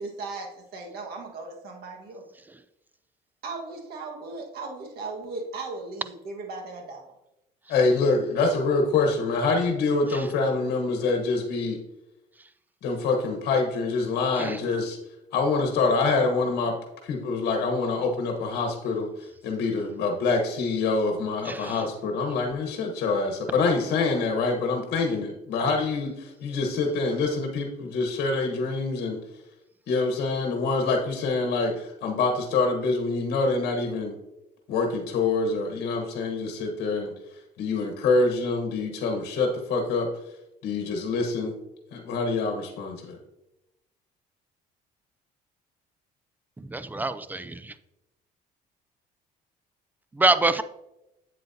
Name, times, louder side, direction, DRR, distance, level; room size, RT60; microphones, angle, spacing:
voice 1, 0.0-2.2 3.4-7.0, right 3 dB, 70° right, 1 dB, 1.6 m, -37 dB
voice 2, 7.7-11.8 12.8-15.0 15.3-16.8 17.0-29.2 29.9-34.1 34.7-37.1 37.6-40.1 40.6-41.5 41.9-43.2, left 3 dB, 70° left, 2 dB, 1.3 m, -25 dB
voice 3, 46.6-47.7 50.2-50.6, right 2 dB, 10° right, 12 dB, 0.4 m, -25 dB
8.4 x 7.8 x 2.8 m, 0.92 s
cardioid pair, 110°, 17 cm